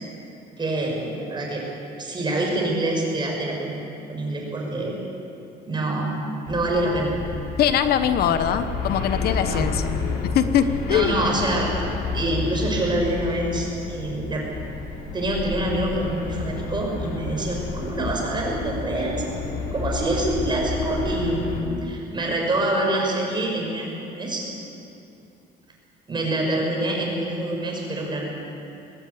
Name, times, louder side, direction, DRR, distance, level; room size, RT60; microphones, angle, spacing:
voice 1, 0.6-1.7 2.0-3.8 4.1-4.9 5.7-7.1 9.4-9.7 10.9-11.7 12.1-14.4 15.1-19.2 19.7-24.4 26.1-28.3, right 1 dB, 25° right, -1 dB, 6.4 m, -26 dB
sound 1, 6.5-21.6, left 4 dB, 85° left, 3.0 m, -30 dB
voice 2, 7.6-10.0 10.3-11.1, left 9 dB, 65° left, 10 dB, 1.1 m, -22 dB
20.5 x 17.0 x 8.6 m, 2.9 s
cardioid pair, 110°, 17 cm